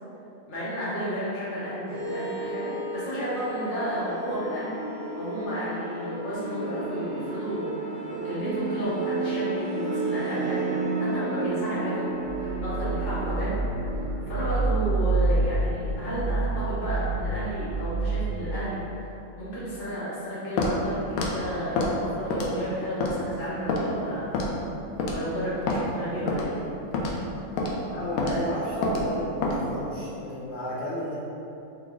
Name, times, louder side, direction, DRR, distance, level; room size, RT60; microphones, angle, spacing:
voice 1, 0.5-4.8 5.1-10.7 11.1-12.1 12.4-13.6 13.9-19.1 19.4-24.3 25.1-26.5, equal, 40° left, -11 dB, 1.1 m, -32 dB
sound 1, 1.9-18.5, right 3 dB, 60° right, 0.6 m, -29 dB
Walk footsteps, 20.6-20.8 21.2-21.3 21.8-21.9 22.3-22.6 23.0-23.1 23.7-23.8 24.3-24.6 25.0-25.2 25.7-25.8 26.3-26.5 26.9-27.2 27.6-27.7 28.2-28.4 28.8-29.0 29.4-29.6, left 3 dB, 80° left, 1.0 m, -26 dB
voice 2, 27.9-31.1, equal, 60° left, -8 dB, 0.8 m, -32 dB
3.8 x 3.4 x 3.6 m, 2.9 s
omnidirectional pair, 1.6 m